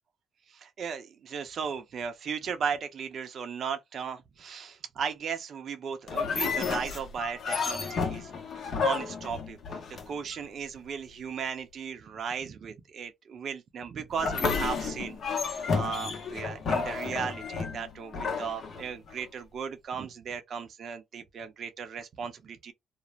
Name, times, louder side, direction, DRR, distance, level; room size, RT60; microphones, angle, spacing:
voice 1, 0.5-8.3 8.8-22.7, right 6 dB, 60° right, 0.6 m, -36 dB
sound 1, 6.1-10.4 14.1-19.2, left 5 dB, 60° left, 0.8 m, -31 dB
2.5 x 2.0 x 3.1 m
cardioid pair, 90°, 0 cm